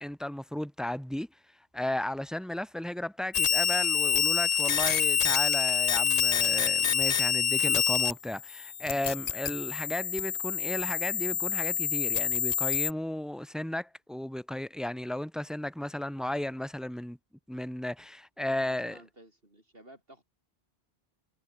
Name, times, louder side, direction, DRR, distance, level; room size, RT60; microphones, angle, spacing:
voice 1, 0.0-1.3 1.7-17.2 17.5-19.0, left 1 dB, ahead, 0.5 m, -34 dB
sound 1, 3.3-8.1 8.4-12.9, left 7 dB, 45° left, 0.7 m, -27 dB
voice 2, 18.6-20.2, right 1 dB, 65° right, 7.4 m, -53 dB
omnidirectional pair, 1.1 m